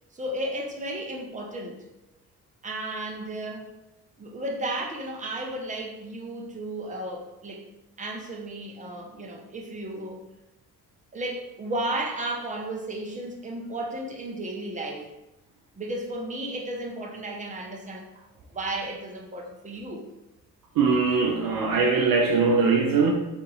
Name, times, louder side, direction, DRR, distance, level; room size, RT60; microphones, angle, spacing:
voice 1, 0.1-1.8 2.6-3.7 4.2-7.6 8.0-10.2 11.1-15.1 15.8-18.3 18.5-20.0, right 1 dB, 15° right, 0 dB, 0.9 m, -34 dB
voice 2, 20.8-23.1, right 4 dB, 45° right, 0 dB, 0.7 m, -21 dB
4.0 x 2.6 x 3.9 m, 0.96 s
figure-of-eight pair, 45°, 48 cm